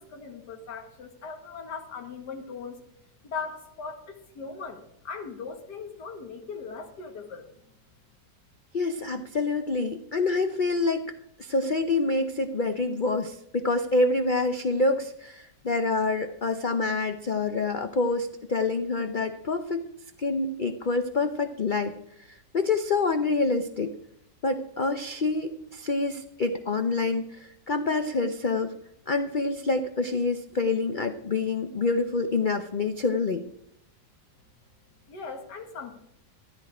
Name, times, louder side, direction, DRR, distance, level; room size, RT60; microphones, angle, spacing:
voice 1, 0.0-2.8 3.2-7.5 35.1-36.0, left 5 dB, 65° left, 5 dB, 2.2 m, -39 dB
voice 2, 8.7-11.0 11.4-19.8 20.2-21.9 22.3-23.9 24.4-28.7 29.1-33.4, left 3 dB, 85° left, 6 dB, 0.4 m, -27 dB
13.0 x 10.5 x 4.9 m, 0.75 s
omnidirectional pair, 1.9 m